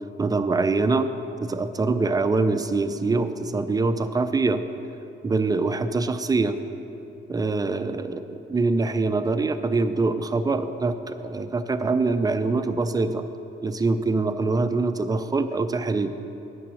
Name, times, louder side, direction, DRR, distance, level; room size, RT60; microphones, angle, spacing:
voice 1, 0.2-1.1 1.4-4.6 5.2-6.6 7.3-13.3 13.6-16.1, right 3 dB, 20° right, 9 dB, 0.5 m, -24 dB
9.3 x 5.8 x 7.0 m, 2.8 s
cardioid pair, 90°, 20 cm